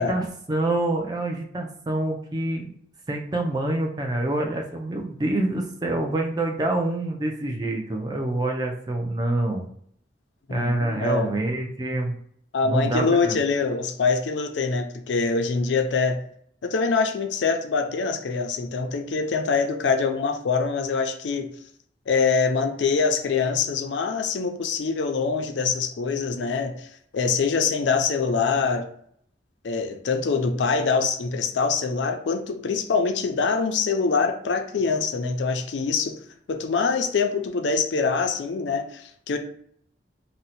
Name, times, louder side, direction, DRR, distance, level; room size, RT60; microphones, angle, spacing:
voice 1, 0.0-2.7 3.1-9.6 10.5-12.1 12.6-13.4, right 2 dB, 20° right, 1 dB, 0.4 m, -26 dB
voice 2, 10.5-11.4 12.5-16.2 16.6-21.5 22.1-26.9 27.1-28.9 29.6-36.2 36.5-39.4, left 4 dB, 85° left, 6 dB, 0.4 m, -24 dB
2.7 x 2.1 x 4.0 m, 0.64 s
head